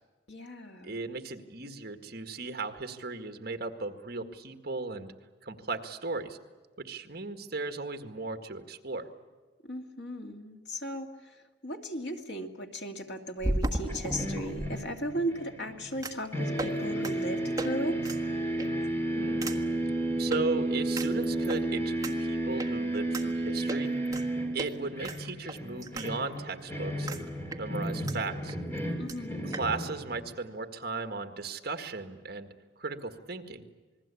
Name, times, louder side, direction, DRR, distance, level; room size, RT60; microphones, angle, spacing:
voice 1, 0.3-0.9 9.6-11.1 11.6-18.1 29.0-29.6, equal, 65° left, 4 dB, 2.4 m, -36 dB
voice 2, 0.8-5.1 5.4-6.4 6.8-9.1 18.9-19.6 20.2-23.9 24.5-27.3 27.6-28.6 29.4-32.5 32.8-33.7, right 3 dB, 50° right, 7 dB, 1.8 m, -36 dB
sound 1, 10.9-11.0 13.4-14.7 16.0-16.3 16.6-16.8 17.0-17.1 17.6-17.7 18.0-18.2 18.6-18.9 19.4-19.6 20.3-20.4 21.0-21.6 22.0-22.1 22.6-22.7 23.1-23.2 23.7-24.2 24.6-24.7 25.0-26.1 26.4-26.5 27.1-27.2 27.5-28.2 28.5-28.6 28.8-28.9 29.1-29.2 29.5-29.7, right 1 dB, 15° right, 1.5 m, -35 dB
sound 2, 13.9-16.1 16.3-30.3, right 1 dB, 10° left, 3.4 m, -32 dB
28.0 x 20.5 x 8.5 m, 1.4 s
head